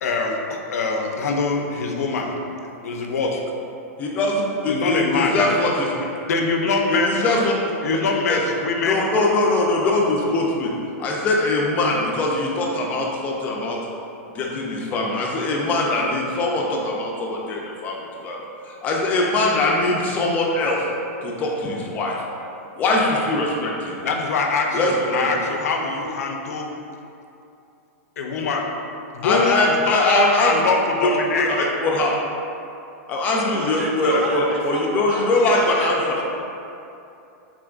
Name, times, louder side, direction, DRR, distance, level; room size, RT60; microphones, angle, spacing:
voice 1, 0.0-2.3 2.8-3.4 4.7-5.4 6.3-7.1 7.8-9.1 24.0-26.7 28.2-28.7 29.1-31.5, left 4 dB, 90° left, 2 dB, 0.5 m, -23 dB
voice 2, 4.0-5.9 6.9-7.5 8.3-8.4 8.8-10.7 11.0-13.8 14.3-17.9 18.2-18.4 18.7-20.8 21.2-22.2 22.8-24.0 24.7-25.3 29.2-30.5 31.5-32.1 33.1-36.0, left 2 dB, 20° left, -1 dB, 0.4 m, -22 dB
voice 3, 33.5-36.2, right 2 dB, 55° right, -1 dB, 0.6 m, -30 dB
3.7 x 3.5 x 2.4 m, 2.7 s
supercardioid pair, 160°, 8 cm